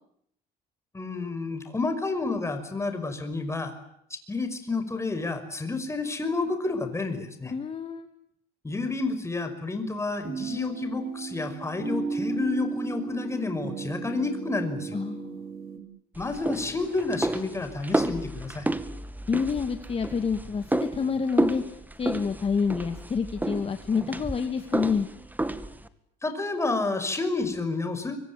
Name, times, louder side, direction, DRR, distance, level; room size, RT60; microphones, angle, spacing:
voice 1, 0.9-3.7 4.3-7.5 8.6-15.0 16.2-18.7 26.2-28.2, left 3 dB, 15° left, 8 dB, 5.6 m, -30 dB
voice 2, 7.5-8.1 14.9-15.4 19.3-21.6 22.0-25.1, left 5 dB, 35° left, 7 dB, 2.5 m, -28 dB
sound 1, 10.2-15.8, right 5 dB, 60° right, 6.2 m, -34 dB
sound 2, 16.1-25.9, right 2 dB, 10° right, 2.0 m, -31 dB
25.5 x 24.5 x 8.8 m, 0.72 s
cardioid pair, 110°, 17 cm